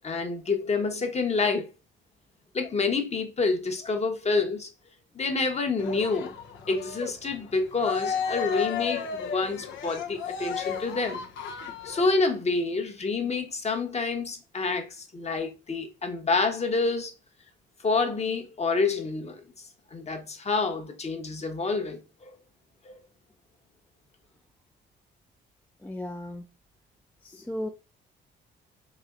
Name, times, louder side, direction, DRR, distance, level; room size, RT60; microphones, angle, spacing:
voice 1, 0.0-1.7 2.5-4.7 5.1-6.3 6.7-11.2 11.8-17.1 17.8-19.4 19.9-22.3, left 3 dB, 35° left, 1.0 m, -28 dB
Cheering, 5.8-12.2, left 7 dB, 75° left, 0.7 m, -34 dB
voice 2, 25.8-26.5 27.2-27.7, left 1 dB, 10° left, 0.4 m, -35 dB
4.2 x 3.0 x 2.5 m
cardioid pair, 90°, 20 cm